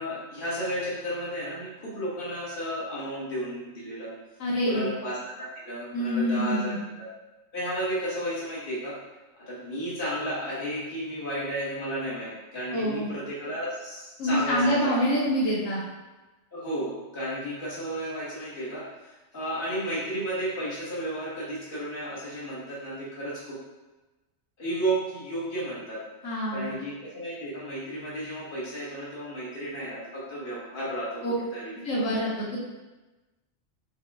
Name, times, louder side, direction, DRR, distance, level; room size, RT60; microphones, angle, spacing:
voice 1, 0.0-4.1 4.6-7.1 7.5-9.0 9.4-15.0 16.5-23.6 24.6-26.0 26.5-31.2 31.5-31.7, right 1 dB, 45° left, -8 dB, 1.4 m, -33 dB
voice 2, 4.4-4.9 5.9-6.8 12.7-13.1 14.2-15.8 26.2-26.7 31.2-31.3 31.8-32.6, equal, 80° left, -6 dB, 1.2 m, -26 dB
4.8 x 2.2 x 3.5 m, 1.1 s
omnidirectional pair, 1.3 m